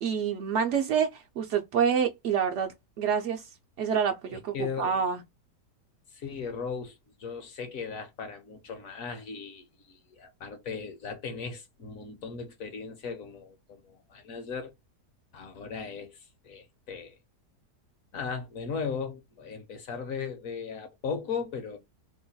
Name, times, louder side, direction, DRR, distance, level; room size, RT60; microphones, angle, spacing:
voice 1, 0.0-3.4 3.8-5.2, right 7 dB, 80° right, 0.6 m, -27 dB
voice 2, 4.3-5.0 6.1-14.7 15.3-17.2 18.1-21.8, left 6 dB, 65° left, 1.0 m, -37 dB
3.0 x 2.2 x 3.9 m
omnidirectional pair, 1.8 m